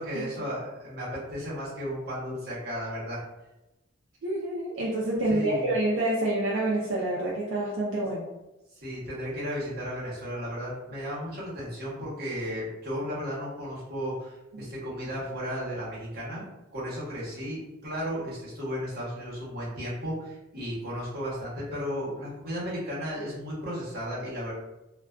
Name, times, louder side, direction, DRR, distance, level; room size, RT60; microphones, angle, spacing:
voice 1, 0.0-3.2 5.3-5.7 8.8-24.5, equal, 50° right, -7 dB, 1.0 m, -34 dB
voice 2, 4.2-8.3, right 1 dB, 75° right, -4 dB, 0.5 m, -27 dB
2.4 x 2.2 x 2.4 m, 0.97 s
head